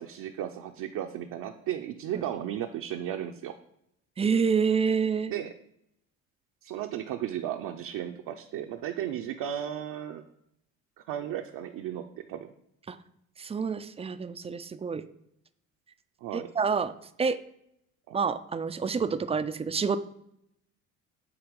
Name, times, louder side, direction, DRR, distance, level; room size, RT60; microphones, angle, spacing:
voice 1, 0.0-3.5 5.3-5.5 6.6-10.2 11.0-12.5 16.2-16.5 18.1-18.2, right 10 dB, 60° right, 3 dB, 0.6 m, -35 dB
voice 2, 4.2-5.3 12.9-13.0 13.4-15.0 16.3-16.9 17.2-17.4 18.1-20.0, right 5 dB, 20° right, 11 dB, 0.3 m, -28 dB
7.9 x 2.8 x 5.2 m, 0.74 s
supercardioid pair, 75°, 37 cm